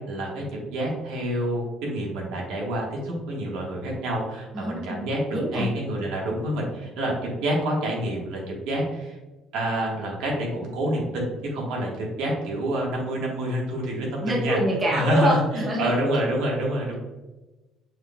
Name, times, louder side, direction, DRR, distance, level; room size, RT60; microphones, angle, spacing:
voice 1, 0.0-9.2 9.5-14.6 14.9-15.4 15.8-16.9, right 1 dB, 85° right, -2 dB, 1.4 m, -27 dB
voice 2, 4.5-5.0 5.3-5.7 14.2-15.9, right 1 dB, 20° right, -3 dB, 0.7 m, -25 dB
6.4 x 3.5 x 2.3 m, 1.1 s
cardioid pair, 180°, 0 cm